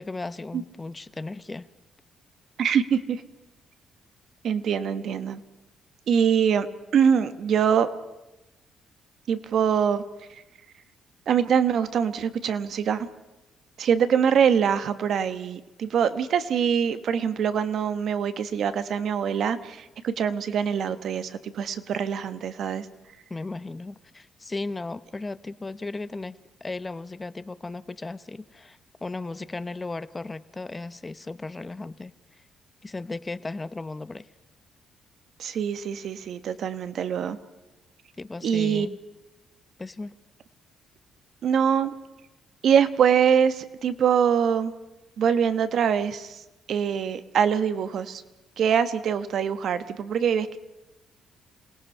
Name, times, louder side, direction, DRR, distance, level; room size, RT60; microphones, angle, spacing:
voice 1, 0.0-1.7 23.3-26.4 26.6-32.1 32.8-34.3 38.2-39.0 39.8-40.2, left 3 dB, 20° left, 15 dB, 0.8 m, -36 dB
voice 2, 2.6-3.2 4.4-5.4 6.1-6.7 6.9-7.9 9.3-10.0 11.3-13.1 13.8-22.9 35.4-37.4 38.4-38.9 41.4-41.9 42.6-44.7 45.2-48.2 48.6-50.6, right 7 dB, 65° right, 11 dB, 1.2 m, -24 dB
27.5 x 18.0 x 5.5 m, 1.0 s
cardioid pair, 90°, 0 cm